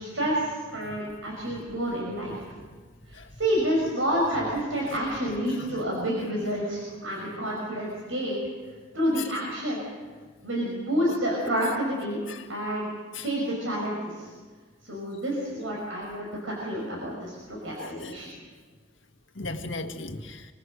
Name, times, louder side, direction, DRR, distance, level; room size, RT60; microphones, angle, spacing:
voice 1, 0.0-2.3 3.1-8.4 8.9-9.8 10.4-12.2 12.5-12.9 13.2-14.3 14.8-18.3, equal, 80° right, -2 dB, 6.1 m, -29 dB
voice 2, 17.8-18.2 19.4-20.5, left 2 dB, 75° left, 6 dB, 1.8 m, -37 dB
26.0 x 25.0 x 6.5 m, 1.5 s
head